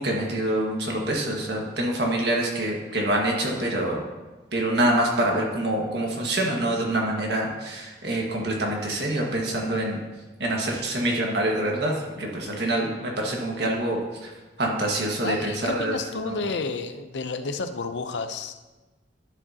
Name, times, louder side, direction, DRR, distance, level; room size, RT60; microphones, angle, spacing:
voice 1, 0.0-4.0 4.5-10.0 10.4-14.3 14.6-15.9 16.2-16.3, right 1 dB, 70° right, 0 dB, 1.6 m, -26 dB
voice 2, 15.2-18.6, left 4 dB, 85° left, 9 dB, 0.6 m, -31 dB
11.0 x 7.4 x 2.8 m, 1.2 s
head